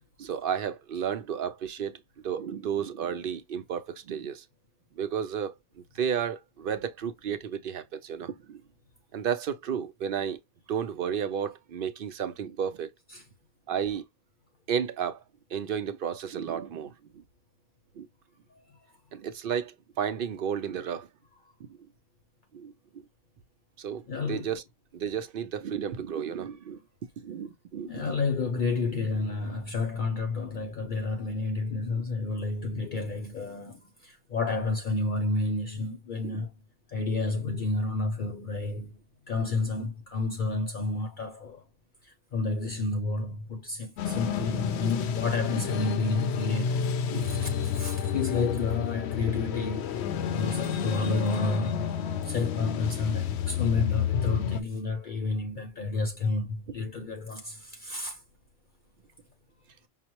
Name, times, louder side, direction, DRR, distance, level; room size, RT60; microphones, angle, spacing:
voice 1, 0.2-2.0 2.2-4.4 5.0-8.6 9.1-10.4 10.7-12.9 13.7-14.0 14.7-15.2 15.5-17.2 18.0-18.1 19.1-21.1 22.5-22.7 23.8-24.6 24.9-26.8 27.2-28.1 36.2-36.4 47.1-47.5 51.1-51.3, right 8 dB, 60° right, 0.7 m, -32 dB
voice 2, 24.1-24.5 27.8-36.5 36.9-39.0 39.3-41.6 42.0-46.9 47.1-50.0 50.3-51.9 52.2-58.2, left 3 dB, 55° left, 0.7 m, -30 dB
sound 1, 44.0-54.6, left 7 dB, 80° left, 0.8 m, -30 dB
5.7 x 2.0 x 2.9 m
omnidirectional pair, 1.1 m